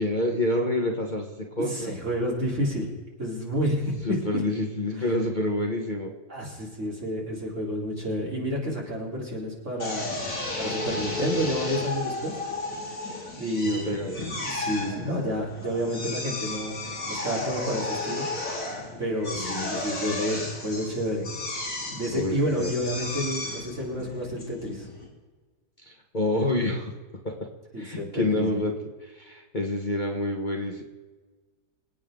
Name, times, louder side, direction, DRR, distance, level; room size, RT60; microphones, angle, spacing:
voice 1, 0.0-1.9 4.0-6.1 13.6-14.3 19.4-19.8 22.1-22.7 25.8-26.9 27.2-27.5 27.8-28.7 29.0-30.8, left 1 dB, 30° left, 1 dB, 1.5 m, -28 dB
voice 2, 1.7-2.9 3.2-4.0 6.3-10.2 10.6-12.4 13.4-14.1 14.4-16.7 17.1-18.3 19.0-21.3 21.9-24.9 27.7-28.6, equal, 50° right, -3 dB, 4.2 m, -30 dB
Drill, 9.8-25.1, left 2 dB, 55° left, 4.3 m, -33 dB
26.5 x 8.9 x 3.8 m, 1.3 s
omnidirectional pair, 1.7 m